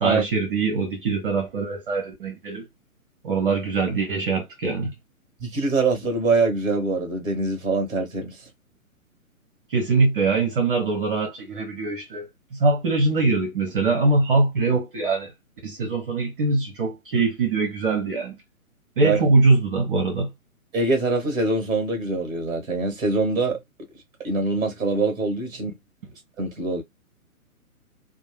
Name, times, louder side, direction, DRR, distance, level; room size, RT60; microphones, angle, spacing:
voice 1, 0.0-2.7 3.2-4.9 9.7-15.3 15.6-18.4 19.0-20.3, right 3 dB, 40° right, 0.7 m, -22 dB
voice 2, 5.4-8.4 19.0-19.3 20.7-23.6 24.2-25.7 26.4-26.8, right 3 dB, 10° right, 0.9 m, -24 dB
2.5 x 2.0 x 3.1 m
figure-of-eight pair, 130°, 43 cm